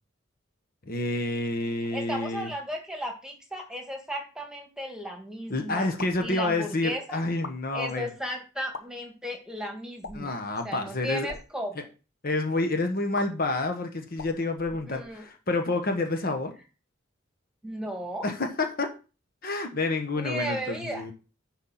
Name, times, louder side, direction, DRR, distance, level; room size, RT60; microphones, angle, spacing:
voice 1, 0.9-2.5 5.5-8.1 10.1-11.3 12.2-16.5 18.2-18.9 19.4-21.1, left 2 dB, 50° left, 5 dB, 1.2 m, -29 dB
voice 2, 1.8-5.9 6.2-7.2 7.7-10.3 10.6-11.9 14.9-15.3 17.6-18.3 20.2-21.1, equal, 5° right, 2 dB, 1.8 m, -35 dB
sound 1, 6.0-6.3 7.3-7.6 8.6-8.8 10.0-10.4 11.1-11.5 13.1-13.3 14.1-15.3, left 4 dB, 75° left, 0.9 m, -42 dB
10.5 x 4.2 x 5.7 m, 0.33 s
head